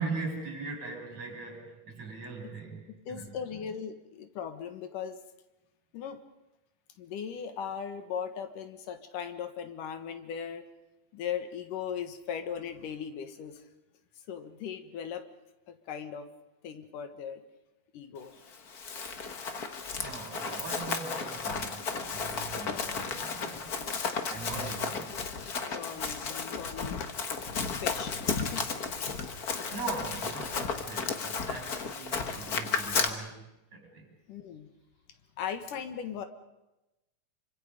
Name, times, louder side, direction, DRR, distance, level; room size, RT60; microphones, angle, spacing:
voice 1, 0.0-3.4 20.0-23.9 24.2-26.0 29.7-34.1, right 4 dB, 65° right, 1 dB, 7.3 m, -40 dB
voice 2, 3.1-5.2 5.9-6.2 7.0-10.7 11.1-13.6 14.3-15.2 15.7-16.3 16.6-17.4 17.9-18.3 25.5-27.1 27.8-28.8 34.3-34.7 35.4-36.3, left 8 dB, 85° left, 8 dB, 3.1 m, -38 dB
Run, 18.5-33.1, left 5 dB, 45° left, 1.2 m, -34 dB
27.0 x 25.5 x 5.3 m, 0.98 s
omnidirectional pair, 3.6 m